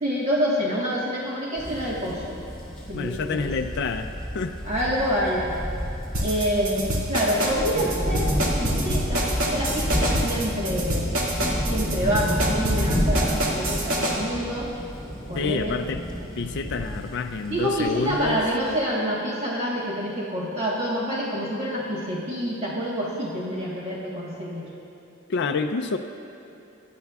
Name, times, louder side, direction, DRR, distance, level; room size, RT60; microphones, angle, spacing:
voice 1, 0.0-2.4 2.9-3.5 4.6-5.6 6.2-11.1 11.7-14.7 15.3-15.7 17.4-24.7, equal, 30° right, -6 dB, 1.4 m, -27 dB
sound 1, 1.6-18.8, equal, 5° left, 2.7 m, -30 dB
voice 2, 2.9-4.6 15.3-16.0 16.4-18.4 25.3-26.0, left 4 dB, 55° left, 6 dB, 0.4 m, -28 dB
sound 2, 6.1-14.1, right 1 dB, 85° right, 2.1 m, -26 dB
21.5 x 10.5 x 2.4 m, 3.0 s
head